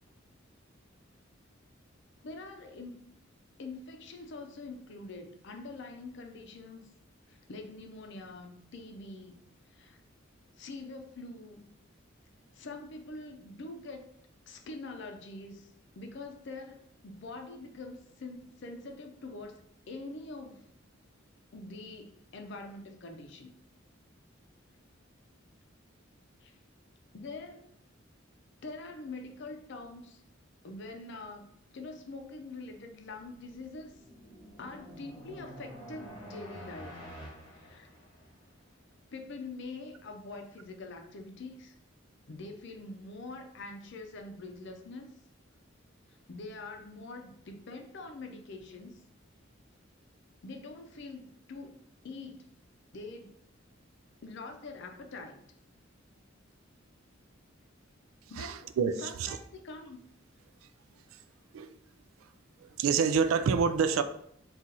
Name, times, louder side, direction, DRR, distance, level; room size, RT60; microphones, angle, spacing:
voice 1, 2.2-3.1 3.6-6.8 7.3-9.4 9.7-10.0 10.6-11.7 12.5-14.1 14.5-16.8 17.0-20.7 21.5-23.5 26.4-26.6 27.1-27.7 28.6-30.2 30.6-31.5 31.7-34.0 34.6-37.1 37.5-37.9 39.1-41.8 42.3-45.1 46.1-49.0 50.4-51.8 52.0-52.5 52.9-53.3 54.2-55.4 58.3-58.7 59.0-60.0, left 3 dB, 60° left, 5 dB, 0.5 m, -44 dB
sound 1, 33.3-38.5, equal, 20° left, 1.0 m, -48 dB
voice 2, 58.4-59.4 61.1-61.2 61.5-61.7 62.6-64.0, right 6 dB, 90° right, 11 dB, 0.3 m, -28 dB
4.1 x 2.4 x 3.8 m, 0.71 s
head